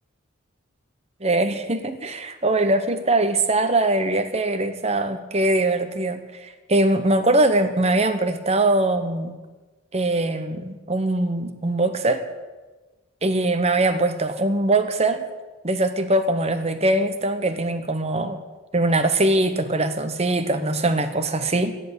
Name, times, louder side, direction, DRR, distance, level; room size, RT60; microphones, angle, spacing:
voice 1, 1.2-9.3 9.9-12.2 13.2-15.2 15.6-18.4 18.7-21.8, right 2 dB, 30° right, 9 dB, 1.1 m, -22 dB
14.0 x 10.5 x 6.8 m, 1.2 s
head